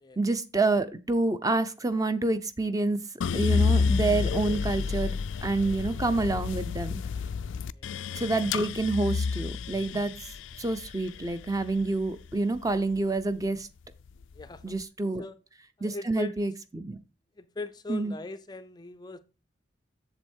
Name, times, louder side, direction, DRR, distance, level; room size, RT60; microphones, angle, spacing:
voice 1, 0.2-3.0 3.3-5.2 5.4-7.0 8.1-10.1 10.6-13.7 14.6-15.2 15.8-17.0 17.9-18.1, right 2 dB, 20° right, 0.6 m, -28 dB
sound 1, 3.2-13.4 13.9-14.6, left 5 dB, 85° left, 0.4 m, -30 dB
voice 2, 15.8-16.4 17.4-19.2, left 3 dB, 20° left, 0.4 m, -40 dB
7.8 x 7.2 x 4.5 m
head